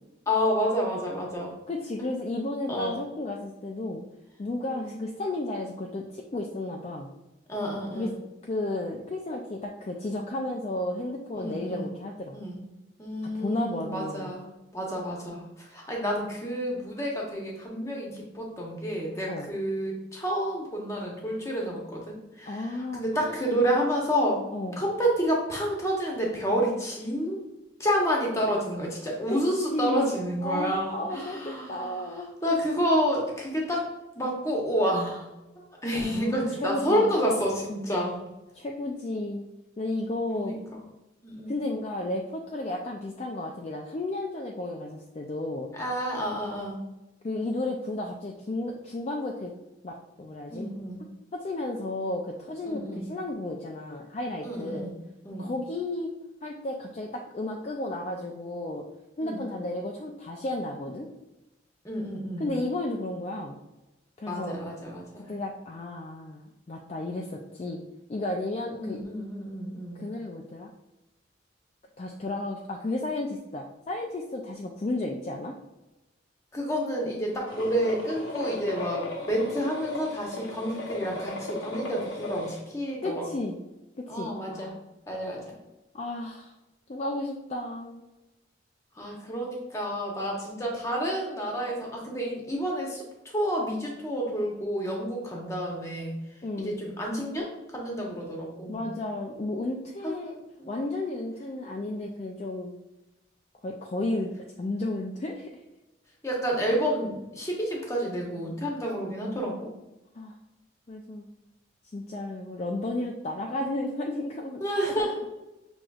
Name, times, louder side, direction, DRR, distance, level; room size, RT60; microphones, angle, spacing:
voice 1, 0.3-1.6 2.7-3.0 4.7-4.9 7.5-8.1 11.4-11.9 12.3-12.6 13.0-14.4 14.7-24.4 24.8-27.4 27.8-33.9 34.1-35.3 35.6-38.2 40.3-40.8 41.2-41.5 45.7-46.8 50.5-51.0 52.7-53.1 54.4-55.0 55.2-55.5 59.2-59.4 61.8-62.5 64.3-65.3 68.7-70.0 76.5-83.2 84.1-84.7 85.1-85.5 89.0-93.0 93.3-96.1 96.6-98.8 100.0-100.7 106.2-109.7 114.6-115.3, equal, 15° left, -2 dB, 0.9 m, -29 dB
voice 2, 1.7-4.0 4.4-7.1 7.9-8.1 8.4-12.4 13.3-14.3 19.3-19.5 22.5-23.5 24.5-24.8 29.3-29.4 29.7-32.3 35.9-37.2 38.5-39.5 39.8-40.6 41.5-45.7 47.2-49.5 49.8-50.6 51.3-54.8 55.4-56.1 56.4-58.8 59.2-61.1 62.4-63.6 64.2-64.6 65.3-66.4 66.7-67.8 68.1-69.0 69.9-70.7 72.0-75.5 83.0-83.6 84.0-84.8 85.9-86.5 86.9-88.0 96.4-96.8 98.7-100.4 100.7-102.7 103.6-104.3 104.6-105.5 110.1-110.4 110.9-111.3 111.9-114.6 115.0-115.1, left 2 dB, 35° left, 0 dB, 0.4 m, -33 dB
sound 1, 77.5-82.6, left 2 dB, 85° left, 0.9 m, -37 dB
6.1 x 3.0 x 2.3 m, 1.0 s
head